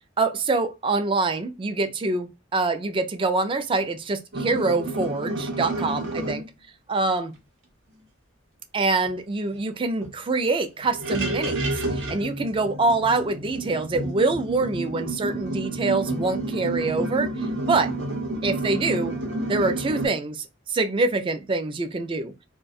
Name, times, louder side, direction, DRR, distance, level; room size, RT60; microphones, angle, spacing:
voice 1, 0.2-6.4 6.9-7.3 8.7-17.3 17.7-17.9 18.4-19.1 19.5-22.3, right 3 dB, 25° right, 0.3 m, -25 dB
sound 1, 4.3-6.4 9.0-9.1 9.5-9.6 10.0-10.1 10.8-20.1, right 2 dB, 70° right, 0.8 m, -30 dB
2.3 x 2.2 x 2.5 m
head